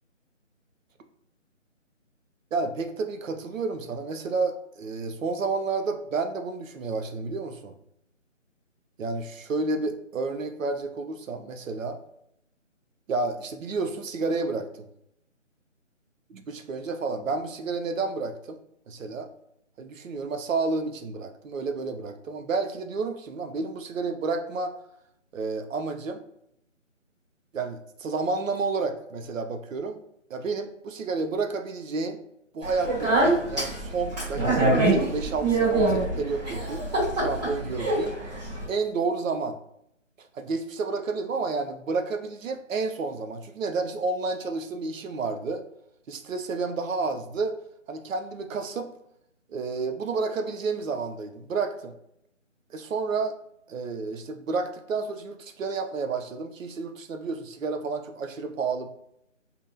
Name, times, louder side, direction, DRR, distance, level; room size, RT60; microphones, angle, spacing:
voice 1, 2.5-7.7 9.0-12.0 13.1-14.9 16.3-18.6 18.9-19.3 19.8-24.7 25.3-26.2 27.5-30.0 30.3-32.2 32.5-36.8 37.1-38.1 38.7-39.6 40.2-45.6 46.1-47.6 47.9-48.9 49.5-51.9 52.7-53.4 53.7-58.9, right 4 dB, 85° right, 7 dB, 0.5 m, -30 dB
Speech, 32.6-38.7, right 2 dB, 35° right, 1.2 m, -25 dB
2.6 x 2.0 x 2.5 m, 0.77 s
figure-of-eight pair, 165°, 38 cm